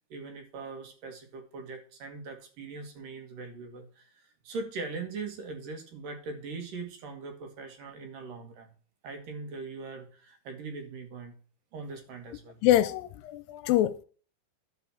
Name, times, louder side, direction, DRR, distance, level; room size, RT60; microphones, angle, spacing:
voice 1, 0.1-8.7 9.0-11.3 11.7-12.6, right 4 dB, 70° right, 3.1 m, -41 dB
voice 2, 12.6-14.0, left 13 dB, 80° left, 2.2 m, -25 dB
11.0 x 4.9 x 7.1 m
omnidirectional pair, 4.2 m